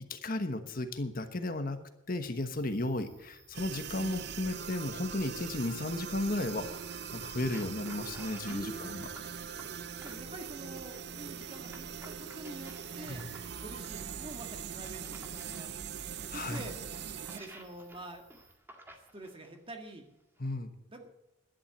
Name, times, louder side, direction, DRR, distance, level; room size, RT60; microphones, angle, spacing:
voice 1, 0.1-1.8 2.1-6.7 7.1-9.1 13.1-13.3 15.5-15.6 16.3-16.6 20.4-20.7, left 2 dB, 45° left, 8 dB, 1.2 m, -34 dB
sound 1, 2.3-18.5, right 4 dB, 75° right, 5.6 m, -62 dB
sound 2, 3.5-17.4, right 7 dB, 55° right, 0.6 m, -42 dB
sound 3, 6.4-10.5 11.4-15.6 16.2-19.6 20.4-20.5, right 1 dB, 10° right, 1.6 m, -54 dB
voice 2, 8.5-9.3 10.0-13.3 13.6-15.7 16.3-16.8 17.3-18.3 19.1-20.1 20.9-21.1, right 1 dB, 30° right, 4 dB, 1.7 m, -46 dB
11.5 x 10.5 x 7.2 m, 0.90 s
head